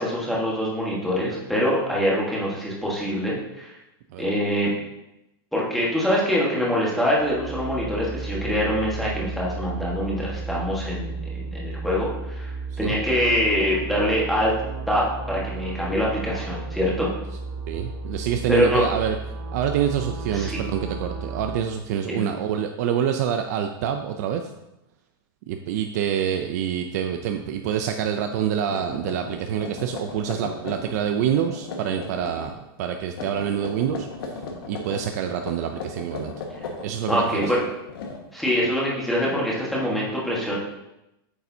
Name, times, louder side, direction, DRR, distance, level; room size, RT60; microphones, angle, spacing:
voice 1, 0.0-3.7 4.2-4.7 5.5-14.5 14.9-17.1 18.5-18.8 20.3-20.6 22.1-22.2 37.1-37.6 38.3-40.5, equal, ahead, -6 dB, 1.4 m, -24 dB
sound 1, 7.1-21.6, right 3 dB, 75° right, 1.3 m, -34 dB
voice 2, 17.7-19.2 19.5-24.5 25.5-36.3 36.8-37.6, right 9 dB, 45° right, 6 dB, 0.5 m, -26 dB
sound 2, 28.3-28.4 28.7-31.0 31.3-32.5 33.1-35.0 35.4-38.7, left 3 dB, 70° left, 1.5 m, -36 dB
8.6 x 6.8 x 2.7 m, 0.91 s
supercardioid pair, 175°, 13 cm